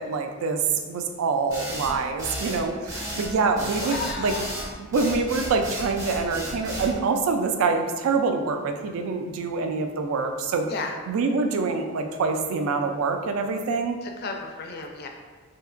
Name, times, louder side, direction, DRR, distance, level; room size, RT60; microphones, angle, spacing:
voice 1, 0.0-4.3 4.8-10.7 11.1-14.0, right 4 dB, 70° right, 5 dB, 0.3 m, -25 dB
sound 1, 1.5-6.9, right 1 dB, 15° right, 0.7 m, -33 dB
voice 2, 3.6-4.7 10.7-10.9 14.0-15.1, left 4 dB, 45° left, 3 dB, 0.3 m, -34 dB
3.2 x 2.8 x 2.4 m, 1.4 s
head